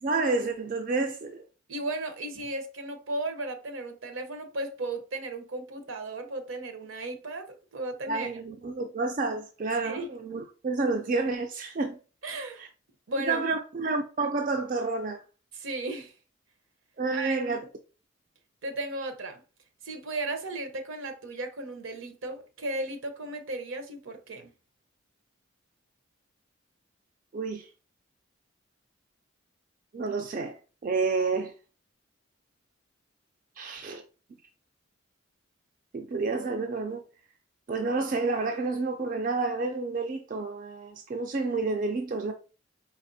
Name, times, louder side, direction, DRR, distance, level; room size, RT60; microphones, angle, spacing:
voice 1, 0.0-1.4 8.1-12.0 12.6-12.7 13.3-15.2 17.0-17.6 27.3-27.7 29.9-31.5 33.6-34.0 35.9-37.0 37.7-42.3, right 3 dB, 40° right, 0.3 m, -29 dB
voice 2, 1.7-8.3 9.8-10.1 12.2-12.6 13.1-13.5 15.5-16.1 17.1-17.4 18.6-19.4 19.8-24.5, right 2 dB, 75° right, 0.8 m, -35 dB
4.1 x 2.9 x 2.6 m
head